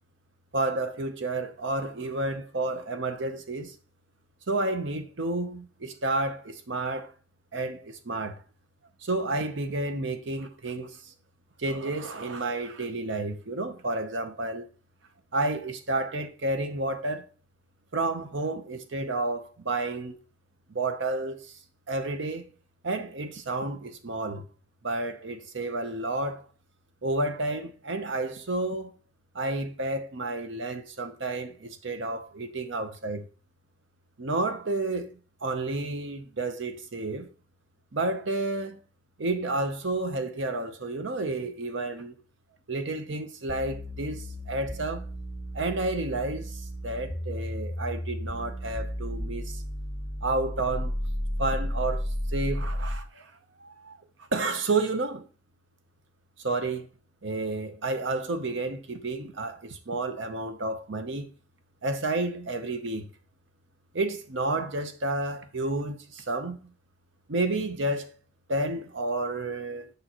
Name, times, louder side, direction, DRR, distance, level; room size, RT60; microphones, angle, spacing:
voice 1, 0.5-3.7 4.5-7.1 7.5-8.4 9.0-11.1 11.6-14.7 15.3-17.3 17.9-20.2 20.7-21.5 21.9-22.5 22.8-24.4 24.8-26.5 27.0-28.9 29.3-33.3 34.2-37.3 37.9-38.8 39.2-42.2 42.7-45.1 45.5-49.6 50.2-50.9 51.4-53.3 53.6-55.3 56.4-56.9 57.2-61.3 61.8-63.1 63.9-66.7 67.3-68.2 68.5-69.9, right 2 dB, 70° right, 0.8 m, -31 dB
sound 1, 43.5-53.1, equal, 40° left, 1.7 m, -33 dB
6.7 x 5.2 x 2.9 m
head